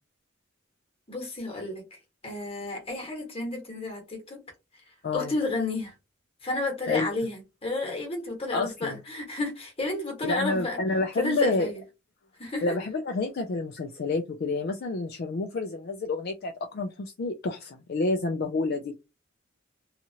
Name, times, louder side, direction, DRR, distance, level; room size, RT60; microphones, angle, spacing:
voice 1, 1.1-4.4 5.1-5.9 6.4-10.8 11.2-11.8 12.4-12.8, left 2 dB, 30° left, 1.2 m, -31 dB
voice 2, 8.5-9.0 10.2-11.7 12.6-18.9, left 3 dB, 50° left, 0.4 m, -29 dB
2.9 x 2.4 x 2.7 m
head